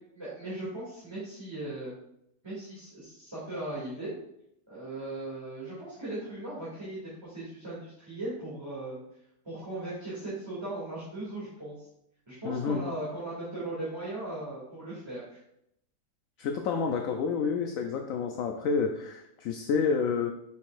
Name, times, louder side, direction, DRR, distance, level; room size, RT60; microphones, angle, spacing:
voice 1, 0.1-1.9 2.4-4.1 4.7-9.0 9.4-11.8 12.3-15.4, right 2 dB, 15° right, -10 dB, 2.6 m, -38 dB
voice 2, 12.4-12.9 16.4-20.3, left 5 dB, 70° left, 5 dB, 0.9 m, -29 dB
7.0 x 6.4 x 2.6 m, 0.78 s
omnidirectional pair, 1.8 m